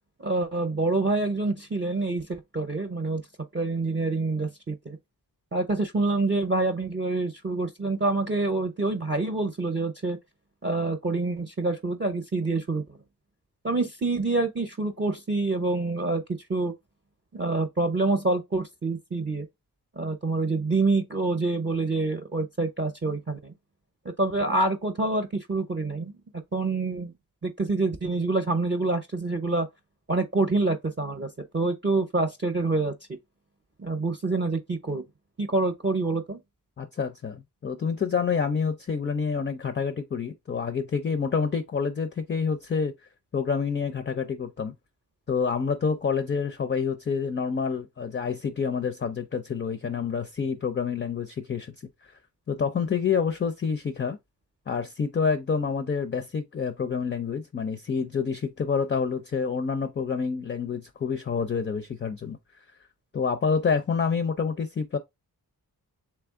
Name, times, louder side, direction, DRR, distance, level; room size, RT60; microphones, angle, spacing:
voice 1, 0.2-3.2 3.5-5.0 5.5-10.2 10.6-12.8 13.6-16.2 16.5-16.7 17.3-19.5 20.0-23.5 24.0-26.1 26.5-27.1 27.4-29.7 30.1-32.9 33.8-35.0 35.4-36.4, right 3 dB, 30° right, 0.7 m, -26 dB
voice 2, 36.8-42.9 43.3-44.7 45.3-51.7 52.5-54.2 54.7-62.4 63.1-65.0, left 6 dB, 30° left, 0.4 m, -28 dB
3.4 x 3.1 x 3.5 m
wide cardioid pair, 85°, 37 cm